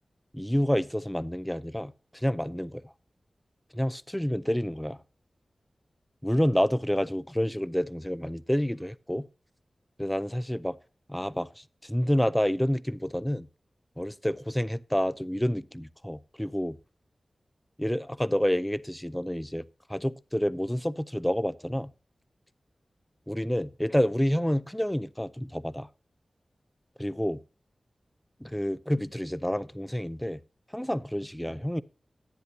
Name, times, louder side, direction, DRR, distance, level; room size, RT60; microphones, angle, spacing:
voice 1, 0.3-2.8 3.7-5.0 6.2-9.3 10.0-10.8 11.1-13.5 14.0-16.8 17.8-19.6 19.9-21.9 23.3-25.9 27.0-27.4 28.4-30.4 30.7-31.8, equal, 5° left, 0.5 m, -28 dB
10.5 x 9.6 x 2.7 m
wide cardioid pair, 65°, 0 cm